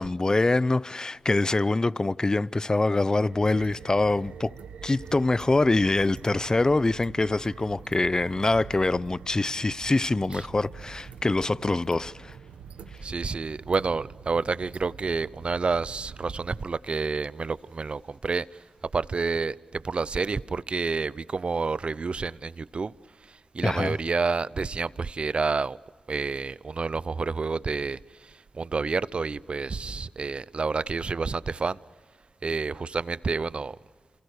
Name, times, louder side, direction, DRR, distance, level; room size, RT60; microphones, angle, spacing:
voice 1, 0.0-4.5 4.8-12.4 23.6-24.0, left 2 dB, 35° left, 0.7 m, -24 dB
sound 1, 3.3-16.6, right 6 dB, 90° right, 1.2 m, -45 dB
voice 2, 13.0-18.6 18.9-22.9 23.3-25.8 26.1-31.8 32.4-33.8, right 4 dB, 55° right, 0.7 m, -29 dB
28.5 x 27.5 x 6.7 m
cardioid pair, 40°, 2 cm